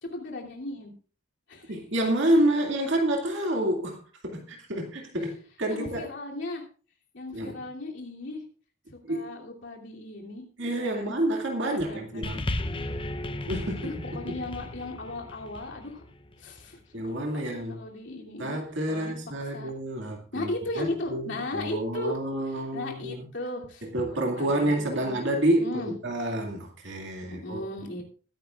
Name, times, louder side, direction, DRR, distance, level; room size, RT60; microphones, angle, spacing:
voice 1, 0.0-0.9 1.5-1.7 5.7-6.6 7.1-8.4 8.9-11.2 11.7-12.3 12.6-13.0 13.8-16.0 16.4-18.6 18.9-19.1 19.4-19.7 20.3-22.2 22.7-25.2 25.6-25.9 27.2-28.0, left 2 dB, 60° left, -1 dB, 2.9 m, -37 dB
voice 2, 1.7-6.0 7.3-7.6 9.1-9.3 10.6-12.4 13.5-13.9 16.9-17.8 18.4-20.5 20.8-23.3 23.9-27.6, right 1 dB, 60° right, 1 dB, 2.3 m, -28 dB
sound 1, 12.2-16.8 17.6-17.7, left 1 dB, 25° left, 0.7 m, -35 dB
21.0 x 10.5 x 2.4 m, 0.40 s
head